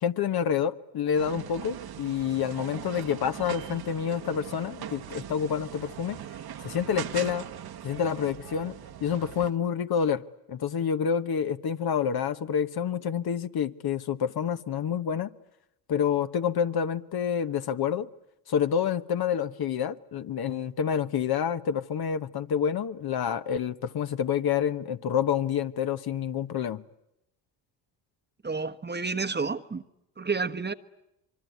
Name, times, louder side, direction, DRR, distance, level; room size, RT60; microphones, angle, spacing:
voice 1, 0.0-6.2 6.6-7.4 7.8-8.7 9.0-10.2 10.5-15.3 15.9-18.1 18.5-26.8, left 8 dB, 50° left, 1.2 m, -28 dB
sound 1, 1.2-9.5, right 9 dB, 50° right, 1.4 m, -40 dB
voice 2, 28.4-29.8 30.2-30.7, right 4 dB, 20° right, 1.2 m, -30 dB
25.5 x 23.5 x 9.4 m
hypercardioid pair, 65°, 49 cm